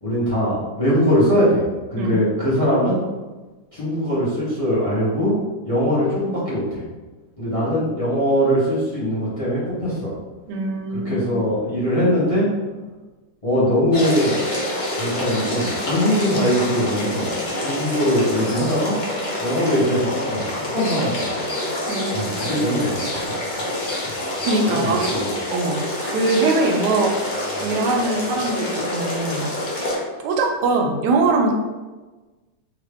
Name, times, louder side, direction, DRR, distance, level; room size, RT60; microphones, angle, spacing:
voice 1, 0.0-1.6 1.9-3.0 3.7-5.4 5.6-6.8 7.4-10.1 11.0-12.5 13.4-14.4 15.0-17.3 17.6-19.0 19.4-21.3 22.1-23.3 24.7-25.3, equal, 25° left, -9 dB, 0.7 m, -21 dB
voice 2, 10.5-11.3 21.9-22.5 24.4-25.1 25.5-27.1 27.6-29.4 30.2-31.5, right 3 dB, 75° right, 2 dB, 1.2 m, -22 dB
sound 1, 13.9-29.9, left 1 dB, 60° left, 0.5 m, -27 dB
2.9 x 2.7 x 3.4 m, 1.2 s
omnidirectional pair, 1.9 m